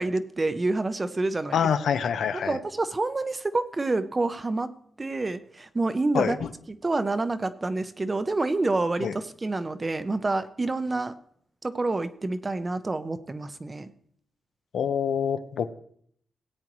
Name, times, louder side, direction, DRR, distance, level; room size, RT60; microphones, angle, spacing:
voice 1, 0.0-1.6 2.3-4.7 5.0-11.1 11.6-13.9, right 2 dB, 20° right, 11 dB, 0.6 m, -28 dB
voice 2, 1.5-2.6 6.1-6.4 9.0-9.1 14.7-15.7, left 7 dB, 80° left, 11 dB, 0.7 m, -26 dB
17.0 x 8.9 x 3.1 m, 0.63 s
wide cardioid pair, 140°, 0 cm